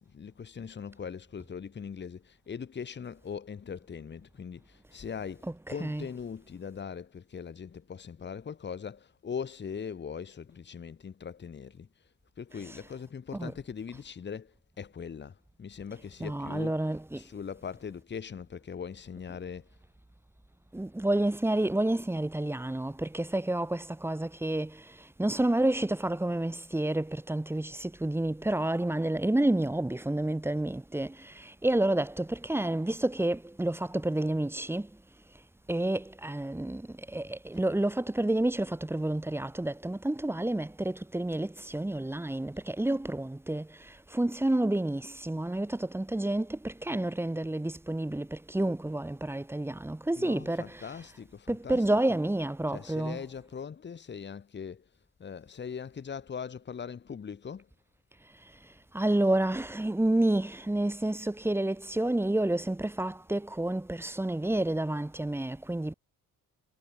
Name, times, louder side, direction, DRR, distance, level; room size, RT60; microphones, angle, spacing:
voice 1, 0.0-16.8 17.1-19.8 50.1-52.0 52.7-54.9 55.2-57.7, left 6 dB, 30° left, 2.7 m, -41 dB
voice 2, 5.4-6.1 12.5-12.9 13.3-13.6 16.2-17.2 20.7-35.0 35.7-51.1 51.5-53.3 58.4-65.9, right 1 dB, 5° right, 3.7 m, -30 dB
cardioid pair, 175°, 35 cm